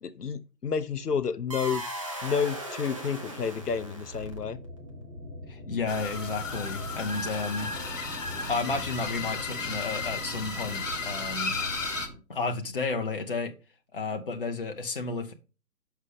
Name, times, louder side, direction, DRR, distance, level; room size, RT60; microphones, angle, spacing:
voice 1, 0.0-1.8 2.2-4.6, left 6 dB, 70° left, 0.7 m, -30 dB
sound 1, 1.5-4.6, right 1 dB, 20° right, 0.7 m, -37 dB
sound 2, 4.2-12.2, left 1 dB, 70° right, 2.3 m, -42 dB
voice 2, 5.5-7.7 8.5-11.6 12.3-13.5 13.9-15.3, left 4 dB, 35° left, 0.7 m, -32 dB
sound 3, 5.9-12.1, left 4 dB, 50° left, 1.2 m, -34 dB
5.9 x 5.7 x 3.4 m
figure-of-eight pair, 145°, 48 cm